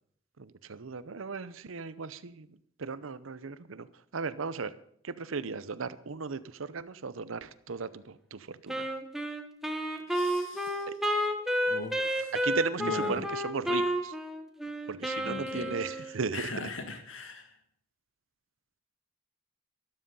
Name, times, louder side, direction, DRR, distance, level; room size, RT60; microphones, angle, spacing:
voice 1, 0.4-2.5 2.8-3.9 4.1-4.7 5.0-8.9 10.9-11.0 12.3-14.1 14.9-16.4, right 4 dB, 90° right, 15 dB, 0.7 m, -36 dB
Wind instrument woodwind instrument, 8.7-16.2, equal, ahead, 1.2 m, -31 dB
voice 2, 10.1-10.9 11.7-12.3 12.8-13.2 15.2-17.5, left 2 dB, 80° left, 6 dB, 2.0 m, -40 dB
13.0 x 12.5 x 5.5 m, 0.65 s
head